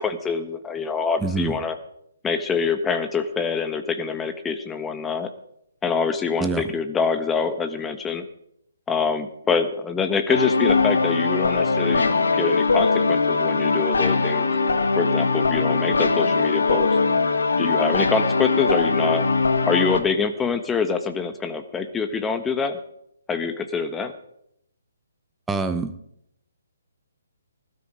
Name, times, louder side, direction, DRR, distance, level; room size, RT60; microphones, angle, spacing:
voice 1, 0.0-1.8 2.2-5.3 5.8-8.3 8.9-17.0 17.6-19.3 19.7-22.8 23.3-24.1, left 5 dB, 10° left, 9 dB, 1.3 m, -25 dB
voice 2, 1.2-1.6 6.4-6.7 25.5-25.9, right 4 dB, 5° right, 8 dB, 0.9 m, -25 dB
sound 1, 10.3-20.0, left 4 dB, 70° left, 2.0 m, -21 dB
20.0 x 13.0 x 5.1 m, 0.76 s
figure-of-eight pair, 135°, 0 cm